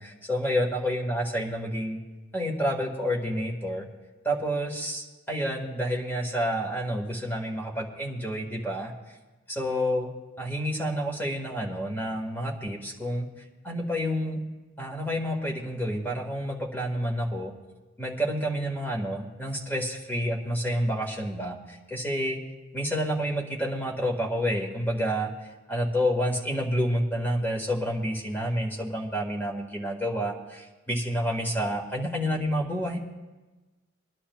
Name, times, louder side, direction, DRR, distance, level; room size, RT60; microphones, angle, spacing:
voice 1, 0.0-2.0 2.3-3.9 4.2-8.9 9.5-10.1 10.4-13.3 13.6-14.4 14.8-17.5 18.0-22.4 22.7-25.3 25.7-33.0, equal, 10° left, -1 dB, 1.7 m, -29 dB
25.0 x 11.5 x 2.3 m, 1.2 s
head